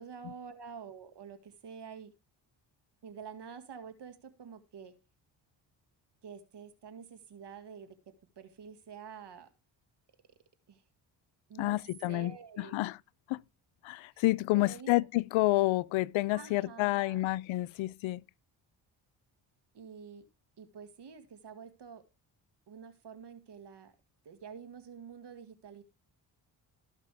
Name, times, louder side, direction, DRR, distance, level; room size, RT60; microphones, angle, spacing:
voice 1, 0.0-2.1 3.0-4.9 6.2-8.0 8.4-9.5 10.7-10.8 11.5-11.8 12.1-12.8 14.5-14.9 16.3-17.2 19.7-20.3 20.6-22.0 22.7-23.9 24.2-25.8, right 6 dB, 60° right, 2.0 m, -48 dB
voice 2, 11.6-13.0 13.3-13.4 13.8-18.2, left 19 dB, 85° left, 0.6 m, -29 dB
17.0 x 5.9 x 3.4 m
cardioid pair, 65°, 46 cm